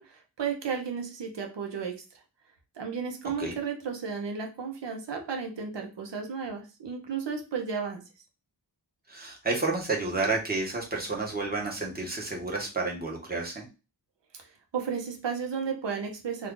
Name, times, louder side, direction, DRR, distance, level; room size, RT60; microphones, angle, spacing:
voice 1, 0.0-1.9 2.8-8.0 14.3-16.5, right 6 dB, 85° right, 3 dB, 0.8 m, -33 dB
voice 2, 9.1-13.6, right 3 dB, 20° right, -1 dB, 1.1 m, -30 dB
2.7 x 2.4 x 3.6 m, 0.30 s
wide cardioid pair, 90°, 42 cm